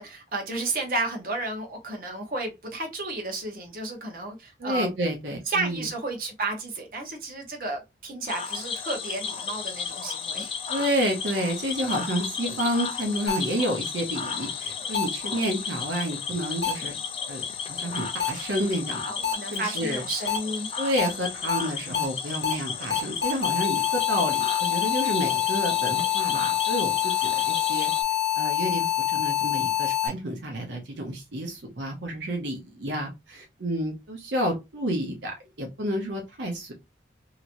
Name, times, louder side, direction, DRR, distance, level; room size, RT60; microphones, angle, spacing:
voice 1, 0.0-4.9 5.5-10.5 19.1-20.7, right 2 dB, 50° right, 1.0 m, -32 dB
voice 2, 4.6-5.9 10.7-16.9 17.3-19.0 19.5-20.0 20.8-27.9 28.3-36.7, equal, 80° right, 0.8 m, -30 dB
Cricket / Frog, 8.3-28.0, left 6 dB, 30° left, 0.4 m, -33 dB
sound 1, 13.3-13.4 14.9-15.0 16.6-16.7 18.2-18.3 19.2-19.3 20.3-20.4 21.0-21.1 21.5-21.6 21.9-22.0 22.4-22.5 22.9-30.1, left 11 dB, 70° left, 1.1 m, -25 dB
2.9 x 2.8 x 2.5 m
head